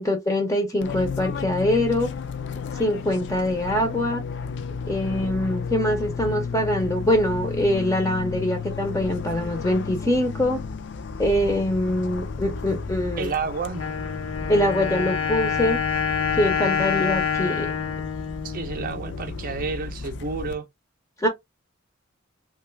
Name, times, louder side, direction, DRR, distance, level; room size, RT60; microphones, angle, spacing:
voice 1, 0.0-2.1 2.8-4.2 4.9-10.6 11.2-13.3 14.5-15.8 16.3-17.7 21.2-21.3, left 1 dB, 15° left, 0.6 m, -23 dB
Fixed-wing aircraft airplane, 0.8-20.5, left 5 dB, 60° left, 0.4 m, -33 dB
voice 2, 13.2-13.8 18.4-20.7, right 4 dB, 45° right, 0.5 m, -30 dB
Wind instrument woodwind instrument, 13.7-19.5, left 7 dB, 90° left, 0.8 m, -27 dB
3.1 x 2.3 x 3.1 m
head